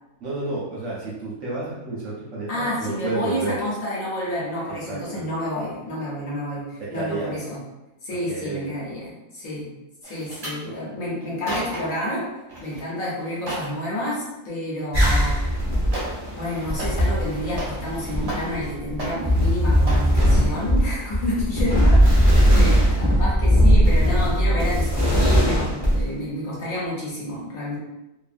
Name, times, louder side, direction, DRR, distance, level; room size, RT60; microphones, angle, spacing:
voice 1, 0.2-3.6 4.9-5.2 6.8-7.3 8.3-8.7 10.7-10.8, right 3 dB, 60° right, -6 dB, 0.9 m, -31 dB
voice 2, 2.5-7.6 8.0-12.3 12.6-15.4 16.3-27.8, left 1 dB, 60° left, -6 dB, 1.2 m, -29 dB
sound 1, 10.0-10.6 11.2-12.0 12.5-12.8 13.2-13.8 15.1-15.2 15.9-16.3 16.6-17.9 18.2-18.7 19.0-19.5 19.9-20.1 20.6-20.8 21.1-21.2, right 1 dB, 35° right, 0.6 m, -33 dB
sound 2, 14.9-26.1, equal, 20° left, 0.9 m, -19 dB
2.7 x 2.5 x 2.5 m, 0.99 s
omnidirectional pair, 1.6 m